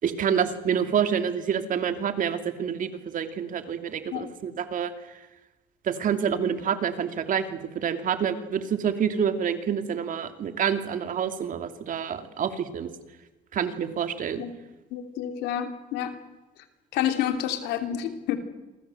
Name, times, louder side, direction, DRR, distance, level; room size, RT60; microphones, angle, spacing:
voice 1, 0.0-4.9 5.8-12.9 13.5-14.4, right 8 dB, 50° right, 8 dB, 2.7 m, -27 dB
voice 2, 14.9-16.1 16.9-18.4, left 10 dB, 90° left, 7 dB, 3.2 m, -29 dB
27.5 x 23.5 x 7.9 m, 1.1 s
cardioid pair, 110°, 17 cm